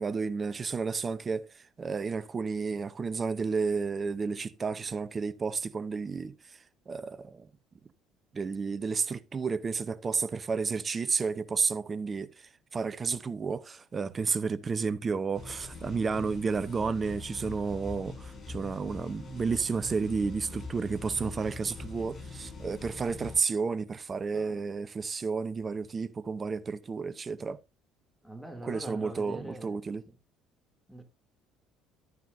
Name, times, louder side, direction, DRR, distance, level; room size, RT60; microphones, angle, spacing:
voice 1, 0.0-1.5 1.8-6.3 6.9-7.5 8.3-27.6 28.6-30.0, right 5 dB, 35° right, 0.7 m, -31 dB
sound 1, 15.3-23.4, left 3 dB, 35° left, 6.3 m, -43 dB
voice 2, 28.2-30.1 30.9-31.0, right 1 dB, ahead, 2.7 m, -44 dB
12.0 x 9.4 x 2.6 m
hypercardioid pair, 65°, 0 cm